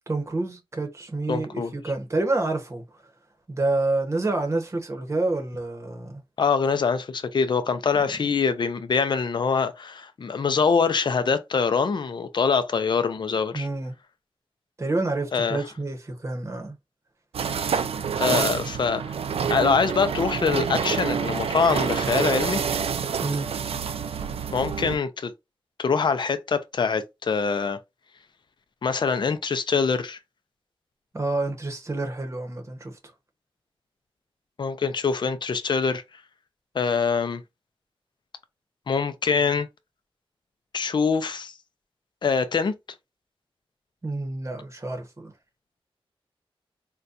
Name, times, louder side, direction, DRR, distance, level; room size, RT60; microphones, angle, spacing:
voice 1, 0.1-2.8 3.5-6.2 13.5-13.9 14.8-16.8 23.2-23.5 31.1-33.0 44.0-45.3, right 2 dB, 30° right, 0.9 m, -28 dB
voice 2, 1.3-1.7 6.4-13.7 15.3-15.6 18.2-19.1 19.5-22.6 24.5-25.3 25.8-27.8 28.8-30.2 34.6-36.0 36.7-37.4 38.9-39.7 40.7-41.5 42.2-42.7, left 5 dB, 50° left, 0.4 m, -24 dB
sound 1, 17.3-25.0, right 6 dB, 75° right, 0.4 m, -27 dB
3.9 x 2.2 x 2.5 m
wide cardioid pair, 110°, 10 cm